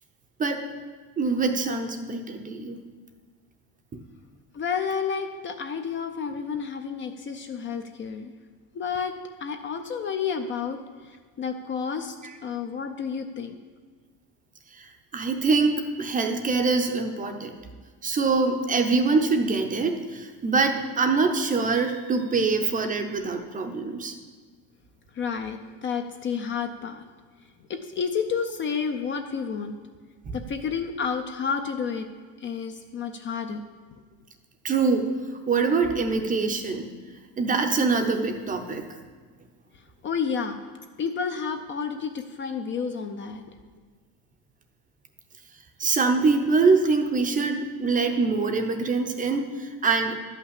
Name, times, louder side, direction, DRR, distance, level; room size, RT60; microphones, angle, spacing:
voice 1, 1.2-2.8 3.9-4.0 14.7-17.5 18.0-24.1 30.3-30.4 34.6-35.2 35.5-36.9 37.4-38.9 45.8-50.2, right 4 dB, 20° right, 5 dB, 0.7 m, -24 dB
voice 2, 4.5-8.3 8.7-9.1 9.4-12.2 12.4-13.6 25.1-27.0 27.7-29.8 30.3-32.1 32.4-33.6 40.0-40.6 41.0-43.4, left 6 dB, 30° left, 6 dB, 0.5 m, -30 dB
12.0 x 5.8 x 8.1 m, 1.5 s
cardioid pair, 165°, 41 cm